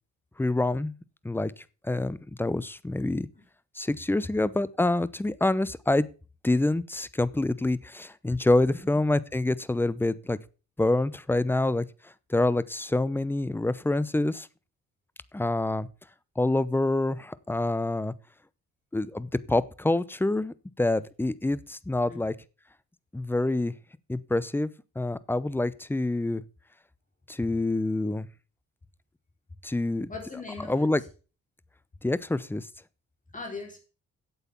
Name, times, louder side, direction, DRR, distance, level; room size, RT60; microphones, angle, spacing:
voice 1, 0.4-0.9 1.2-1.5 1.8-3.3 3.8-6.1 6.4-10.4 10.8-11.8 12.3-14.5 15.3-15.9 16.4-18.1 18.9-22.3 23.1-23.7 24.1-24.7 25.0-26.4 27.3-28.3 29.6-30.1 30.7-31.0 32.0-32.7, left 2 dB, 5° left, 0.7 m, -26 dB
voice 2, 30.1-30.9 33.3-33.8, left 3 dB, 25° left, 4.0 m, -39 dB
8.3 x 8.1 x 6.9 m
cardioid pair, 90°, 30 cm